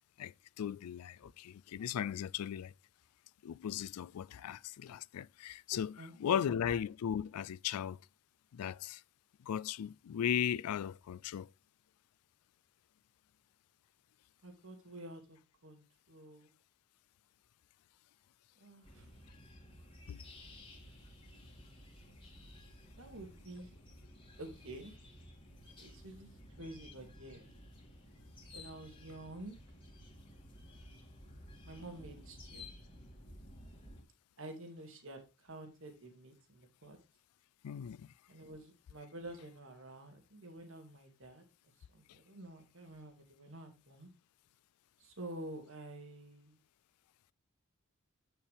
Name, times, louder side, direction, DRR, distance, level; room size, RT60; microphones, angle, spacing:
voice 1, 0.2-2.7 3.4-8.0 8.5-9.0 9.4-11.5 20.1-20.2 37.6-38.1, left 9 dB, 80° left, 0.3 m, -37 dB
voice 2, 6.0-6.5 14.4-16.5 18.6-19.1 23.0-23.8 24.4-24.9 25.8-27.5 28.5-29.6 31.6-32.7 34.4-37.0 38.3-41.4 41.9-44.1 45.0-46.6, right 1 dB, 60° right, 2.2 m, -49 dB
sound 1, 18.8-34.0, left 1 dB, 25° left, 2.3 m, -54 dB
8.5 x 7.1 x 3.4 m
head